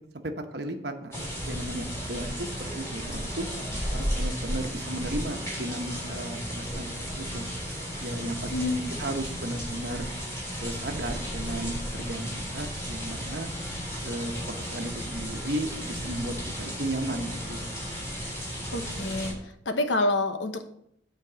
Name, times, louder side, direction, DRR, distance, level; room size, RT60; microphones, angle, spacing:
voice 1, 0.2-1.1 1.5-3.5 3.9-7.5 8.0-8.7 9.0-10.1 10.6-12.3 12.5-13.5 14.0-17.6, right 1 dB, 60° right, 5 dB, 1.1 m, -34 dB
sound 1, 1.1-19.3, equal, 15° left, 3.6 m, -34 dB
voice 2, 8.5-9.0 18.7-19.3 19.7-20.7, left 2 dB, 75° left, 7 dB, 1.1 m, -27 dB
9.6 x 4.6 x 7.5 m, 0.72 s
head